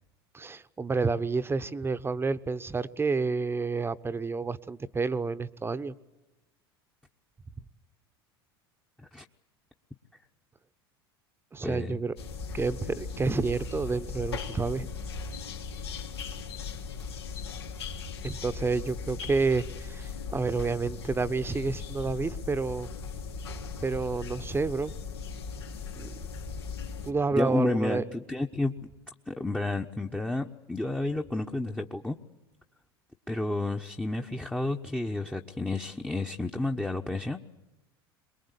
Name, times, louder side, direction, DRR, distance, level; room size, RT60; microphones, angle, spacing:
voice 1, 0.3-5.9 11.5-12.1 12.5-14.9 18.2-22.9 23.8-24.9 26.0-26.2 27.0-28.0, right 4 dB, 15° right, 14 dB, 1.1 m, -29 dB
voice 2, 11.6-12.0 27.3-28.7 29.3-32.2 33.3-37.4, left 2 dB, 5° left, 2 dB, 1.1 m, -31 dB
sound 1, 12.2-27.1, left 5 dB, 85° left, 3.2 m, -38 dB
23.5 x 21.5 x 8.4 m, 1.0 s
hypercardioid pair, 85°, 13 cm